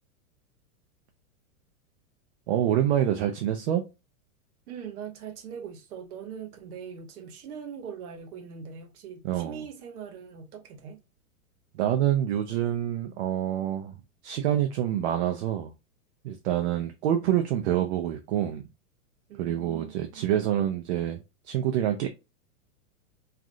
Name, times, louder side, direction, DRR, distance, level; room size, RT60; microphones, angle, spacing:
voice 1, 2.5-3.8 9.2-9.6 11.7-13.9 14.2-15.7 16.2-18.7 19.4-21.2 21.5-22.1, right 11 dB, 50° right, 0.4 m, -26 dB
voice 2, 4.7-11.0 19.3-20.3, right 7 dB, 80° right, 1.1 m, -41 dB
3.3 x 2.4 x 2.5 m
supercardioid pair, 150°, 44 cm